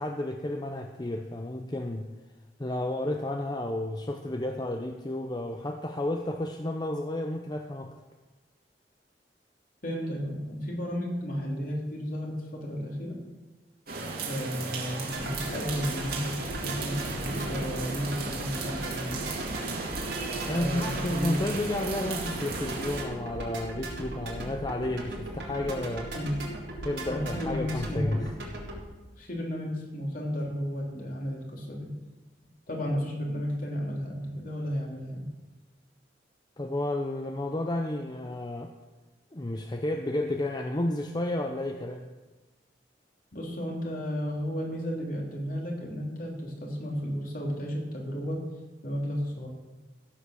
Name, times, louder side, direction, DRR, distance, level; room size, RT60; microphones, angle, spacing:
voice 1, 0.0-2.1 2.6-7.9 20.5-26.1 26.8-28.3 36.6-38.7 39.3-42.1, left 1 dB, 25° left, 4 dB, 0.7 m, -31 dB
voice 2, 9.8-13.2 14.3-19.3 20.5-21.5 25.6-25.7 26.1-26.5 27.0-28.2 29.2-31.9 32.7-35.3 43.3-48.4 48.8-49.5, equal, 50° left, -1 dB, 3.2 m, -33 dB
sound 1, 13.9-23.0, right 3 dB, 60° right, 2.5 m, -35 dB
sound 2, 15.1-28.8, right 1 dB, 85° right, 4.0 m, -38 dB
15.5 x 8.1 x 6.4 m, 1.2 s
head